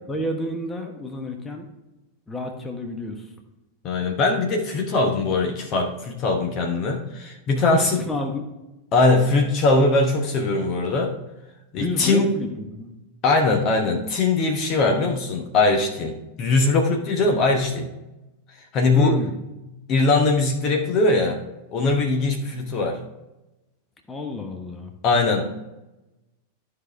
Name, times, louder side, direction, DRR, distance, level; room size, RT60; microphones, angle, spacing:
voice 1, 0.1-1.7 2.3-3.3 7.7-8.5 11.8-12.9 18.9-19.4 24.1-24.9, left 1 dB, 15° left, 4 dB, 1.2 m, -30 dB
voice 2, 3.8-8.0 8.9-11.1 11.7-12.3 13.2-17.9 18.7-19.2 19.9-21.4 21.7-23.0 25.0-25.5, left 3 dB, 35° left, 3 dB, 1.0 m, -21 dB
13.0 x 4.9 x 3.4 m, 0.99 s
figure-of-eight pair, 90°, 0 cm